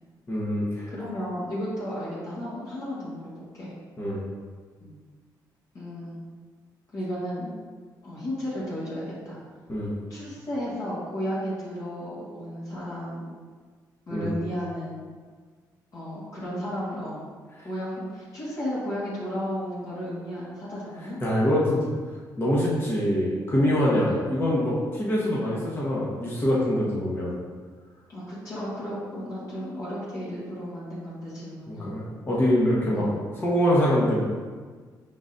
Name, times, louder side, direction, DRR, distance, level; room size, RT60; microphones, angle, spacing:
voice 1, 0.3-0.9 4.0-4.2 9.7-9.9 14.1-14.3 21.2-21.9 22.4-27.3 31.7-33.1 33.4-34.2, equal, 30° left, -6 dB, 1.1 m, -24 dB
voice 2, 0.9-3.7 4.8-4.9 5.7-6.2 6.9-7.5 8.0-9.4 10.1-13.4 14.1-15.0 15.9-17.2 17.6-21.2 24.0-24.2 28.1-31.9 32.9-33.2, equal, 50° left, -8 dB, 1.5 m, -33 dB
5.2 x 3.9 x 2.6 m, 1.5 s
cardioid pair, 95°, 8 cm